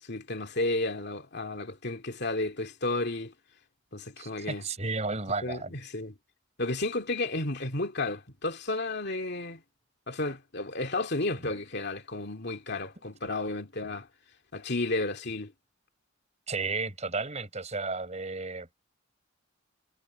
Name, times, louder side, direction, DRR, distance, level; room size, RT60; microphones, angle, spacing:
voice 1, 0.1-3.3 3.9-4.6 5.4-6.1 6.6-9.6 10.1-14.1 14.5-15.5, left 2 dB, 55° left, 2.6 m, -32 dB
voice 2, 4.2-5.7 16.5-18.7, right 3 dB, 35° right, 5.1 m, -33 dB
head